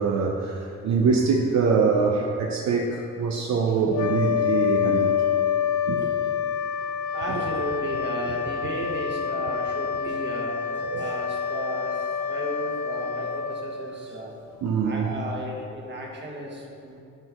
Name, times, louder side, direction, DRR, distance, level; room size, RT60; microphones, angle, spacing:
voice 1, 0.0-5.2 5.9-6.1 10.9-11.1 14.6-15.1, right 5 dB, 65° right, 1 dB, 0.7 m, -24 dB
sound 1, 3.9-14.5, left 8 dB, 85° left, 0.5 m, -27 dB
voice 2, 7.1-14.3 14.8-17.0, right 1 dB, 35° right, -1 dB, 1.5 m, -34 dB
10.5 x 4.5 x 3.6 m, 2.5 s
cardioid pair, 90°, 30 cm